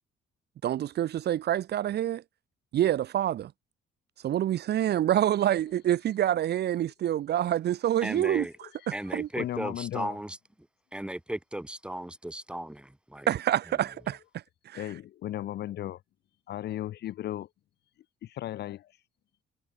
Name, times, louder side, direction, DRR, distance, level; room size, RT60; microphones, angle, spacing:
voice 1, 0.6-2.2 2.7-3.5 4.2-8.5 9.1-9.3 13.3-14.2 14.7-14.8, right 11 dB, 55° right, 0.7 m, -26 dB
voice 2, 8.0-8.5 8.9-10.4 10.9-13.3, right 1 dB, 5° right, 1.9 m, -36 dB
voice 3, 9.4-10.2 14.7-16.0 16.5-17.5 18.2-18.9, left 13 dB, 55° left, 0.5 m, -35 dB
cardioid pair, 130°, 20 cm